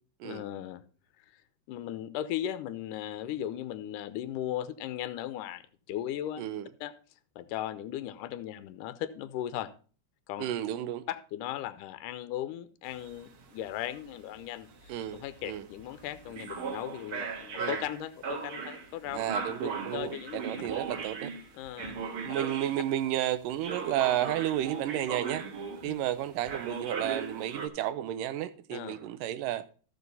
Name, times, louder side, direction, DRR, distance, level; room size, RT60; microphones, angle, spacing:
voice 1, 0.2-0.8 1.3-1.4 1.7-6.5 6.8-6.9 7.4-9.7 10.3-10.4 11.1-14.7 15.1-19.2 19.6-20.4 21.5-22.0 22.3-22.4 25.8-25.9 28.7-29.0, left 12 dB, 80° left, 2.3 m, -37 dB
voice 2, 10.4-11.0 14.9-15.6 17.6-17.8 19.1-21.3 22.2-25.4 25.8-29.6, right 12 dB, 85° right, 2.4 m, -32 dB
sound 1, 12.9-23.1 23.6-26.1 26.4-27.7, right 5 dB, 50° right, 1.7 m, -38 dB
14.0 x 6.8 x 4.0 m
omnidirectional pair, 3.8 m